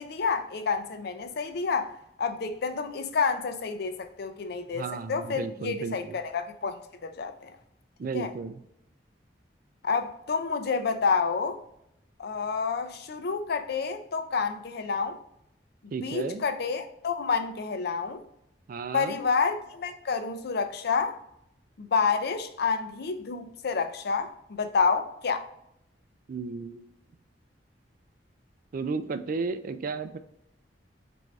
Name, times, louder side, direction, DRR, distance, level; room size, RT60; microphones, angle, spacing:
voice 1, 0.0-1.9 2.2-7.3 8.1-8.3 9.8-11.6 12.2-15.2 16.0-18.2 18.9-21.2 21.8-25.4, left 5 dB, 60° left, 0.5 m, -29 dB
voice 2, 4.7-6.2 8.0-8.6 15.9-16.4 18.7-19.2 26.3-26.9 28.7-30.2, right 4 dB, 50° right, 0.3 m, -33 dB
4.6 x 2.6 x 3.2 m
head